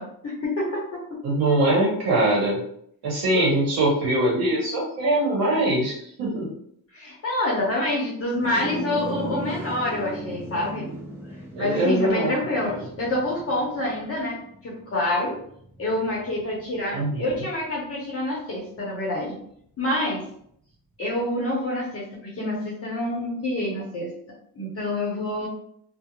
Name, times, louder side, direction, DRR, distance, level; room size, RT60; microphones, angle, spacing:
voice 1, 0.0-1.2 3.3-3.4 6.9-10.9 11.6-14.4 14.6-15.4 15.8-19.4 19.8-20.2 21.0-24.1 24.5-25.5, left 1 dB, 35° left, -4 dB, 0.7 m, -27 dB
voice 2, 1.2-2.6 3.0-6.5 11.5-12.3 12.6-12.8 16.9-17.4, right 1 dB, 90° right, -3 dB, 0.8 m, -22 dB
sound 1, 8.4-17.9, right 1 dB, 5° right, 0.3 m, -38 dB
2.4 x 2.0 x 2.8 m, 0.66 s
cardioid pair, 130°, 39 cm